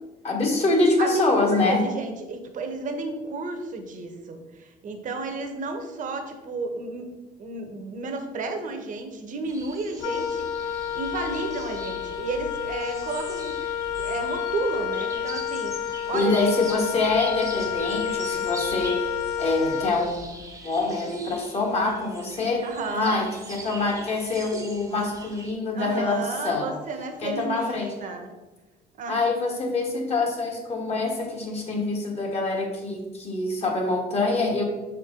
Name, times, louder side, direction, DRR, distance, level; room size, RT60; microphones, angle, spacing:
voice 1, 0.2-1.9 16.1-19.1 19.4-20.4 20.6-22.7 22.9-26.7 27.2-27.9 29.1-34.6, left 3 dB, 40° left, 0 dB, 1.6 m, -25 dB
voice 2, 1.0-7.1 7.4-13.6 14.0-16.4 22.6-23.2 25.7-28.3 29.0-29.2, right 3 dB, 50° right, 5 dB, 1.0 m, -32 dB
sound 1, 9.4-25.5, right 2 dB, 20° right, 1.0 m, -42 dB
Wind instrument woodwind instrument, 10.0-20.4, left 9 dB, 80° left, 0.6 m, -30 dB
6.4 x 4.6 x 3.7 m, 1.1 s
cardioid pair, 110°, 17 cm